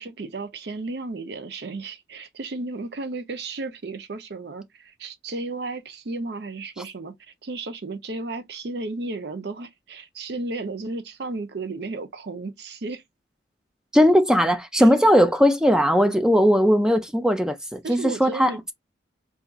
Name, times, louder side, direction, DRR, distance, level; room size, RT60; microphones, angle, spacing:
voice 1, 0.0-7.1 7.4-13.0 14.8-14.9 17.8-18.7, right 3 dB, 55° right, 0.6 m, -33 dB
voice 2, 13.9-18.7, equal, 5° right, 0.3 m, -18 dB
4.1 x 2.4 x 2.3 m
head